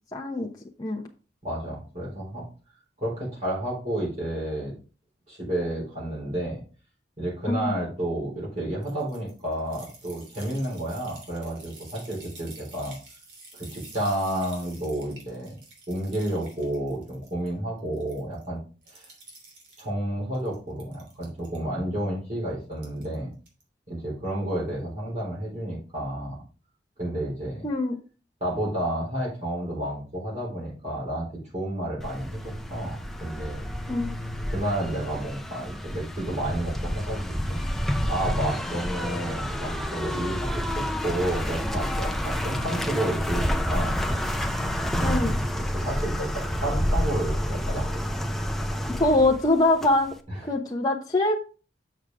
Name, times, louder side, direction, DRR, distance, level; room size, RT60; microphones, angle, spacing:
voice 1, 0.1-0.5 0.8-1.0 7.5-7.7 27.6-28.0 33.9-34.1 45.0-45.3 49.0-50.1 50.4-51.3, left 2 dB, 20° left, -2 dB, 1.0 m, -23 dB
voice 2, 1.4-2.5 3.0-4.7 5.3-6.6 7.2-13.0 13.5-15.6 15.9-18.6 18.9-19.1 19.8-23.3 23.9-26.4 27.0-27.7 28.4-33.6 34.5-37.6 38.1-44.0 44.9-48.3 50.3-50.4, right 1 dB, 40° right, -4 dB, 4.0 m, -31 dB
sound 1, 8.8-17.5 17.8-18.5 18.8-19.9 20.3-21.6 22.7-23.1 23.5-23.6, right 3 dB, 70° right, 3.1 m, -49 dB
sound 2, 32.0-50.2, equal, ahead, 0.6 m, -29 dB
7.4 x 6.4 x 3.6 m, 0.35 s
head